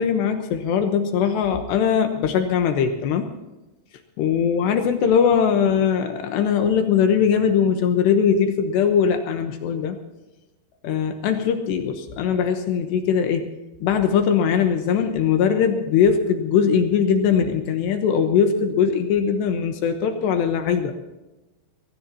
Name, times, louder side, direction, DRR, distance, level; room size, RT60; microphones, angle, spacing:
voice 1, 0.0-3.3 4.2-10.0 10.8-13.5 13.8-20.9, left 7 dB, 75° left, 6 dB, 2.7 m, -20 dB
22.0 x 17.0 x 2.8 m, 1.0 s
omnidirectional pair, 6.0 m